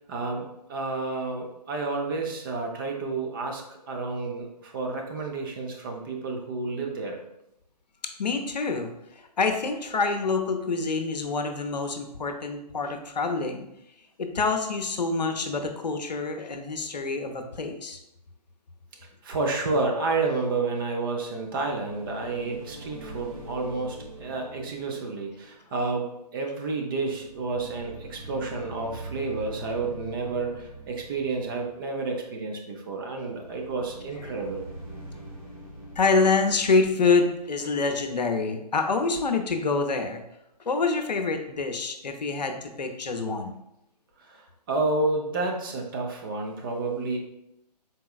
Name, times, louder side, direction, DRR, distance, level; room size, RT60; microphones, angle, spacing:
voice 1, 0.1-7.2 19.2-34.6 44.2-47.2, right 3 dB, 30° right, 1 dB, 0.6 m, -30 dB
voice 2, 8.2-8.9 9.4-13.6 14.2-18.0 36.0-40.2 40.7-43.5, left 4 dB, 80° left, 5 dB, 0.6 m, -26 dB
sound 1, 21.2-26.6 26.8-32.1 33.0-37.9, right 2 dB, 55° right, 1.3 m, -44 dB
4.0 x 3.7 x 2.4 m, 0.82 s
figure-of-eight pair, 140°, 21 cm